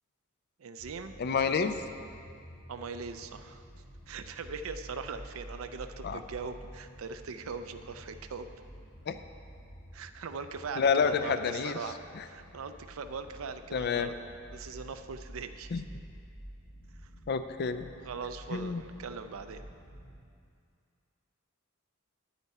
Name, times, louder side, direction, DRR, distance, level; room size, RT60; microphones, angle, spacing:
voice 1, 0.6-1.7 2.7-3.6 4.1-8.5 9.9-14.2 14.5-15.7 17.6-17.7 18.0-19.6, right 5 dB, 75° right, 9 dB, 0.5 m, -41 dB
sound 1, 0.8-20.2, equal, 25° left, 2.1 m, -50 dB
voice 2, 1.2-1.8 6.0-6.2 9.1-9.2 10.8-11.8 13.7-14.1 15.7-15.8 17.3-17.9 18.5-18.8, left 6 dB, 50° left, 10 dB, 0.4 m, -28 dB
9.9 x 8.2 x 4.2 m, 2.4 s
head